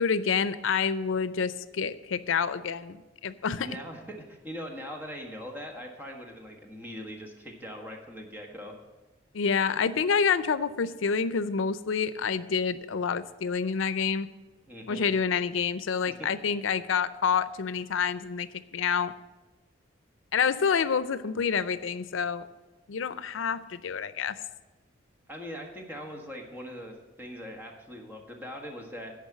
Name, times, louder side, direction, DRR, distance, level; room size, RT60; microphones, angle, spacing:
voice 1, 0.0-3.7 9.3-14.3 14.9-18.5 18.7-19.1 20.3-22.5 22.9-24.4, left 6 dB, 90° left, 14 dB, 0.5 m, -28 dB
voice 2, 3.6-8.7 14.7-15.1 16.1-16.3 25.3-29.1, equal, 10° right, 1 dB, 1.5 m, -41 dB
10.5 x 5.4 x 7.4 m, 1.1 s
head